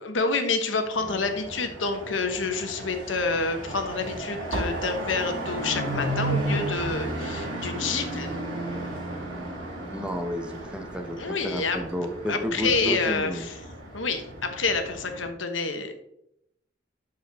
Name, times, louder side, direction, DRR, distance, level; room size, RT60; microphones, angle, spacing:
voice 1, 0.0-8.3 11.2-11.8 12.3-13.6 13.9-16.0, left 4 dB, 80° left, 6 dB, 1.1 m, -28 dB
sound 1, 0.9-15.3, right 1 dB, 80° right, 2.7 m, -34 dB
voice 2, 9.9-11.2 11.4-13.5, equal, 5° right, 5 dB, 0.7 m, -31 dB
7.8 x 6.4 x 3.5 m, 0.77 s
head